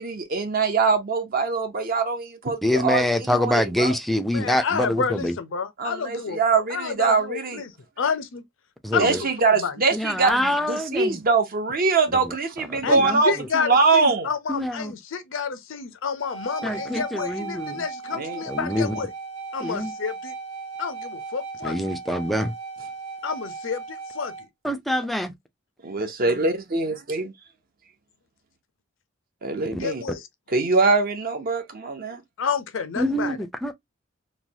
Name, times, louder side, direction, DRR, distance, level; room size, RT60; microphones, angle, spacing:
voice 1, 0.0-4.0 5.8-7.6 9.0-14.3 18.1-18.4 25.8-27.3 29.4-30.0 30.5-32.2, right 4 dB, 45° right, 0.7 m, -23 dB
voice 2, 2.6-5.3 8.8-9.2 9.9-11.2 12.9-13.2 14.5-14.9 16.6-17.8 18.5-18.9 19.6-19.9 21.6-22.5 24.6-25.3 29.7-29.8 33.0-33.7, left 1 dB, ahead, 0.4 m, -25 dB
voice 3, 4.2-6.4 6.7-7.7 8.0-8.4 8.9-9.7 12.8-19.1 19.5-20.3 20.8-21.8 23.2-24.3 29.8-30.3 32.4-33.4, left 5 dB, 70° left, 0.6 m, -29 dB
sound 1, 16.2-24.5, right 4 dB, 85° right, 1.2 m, -37 dB
3.1 x 2.2 x 2.6 m
head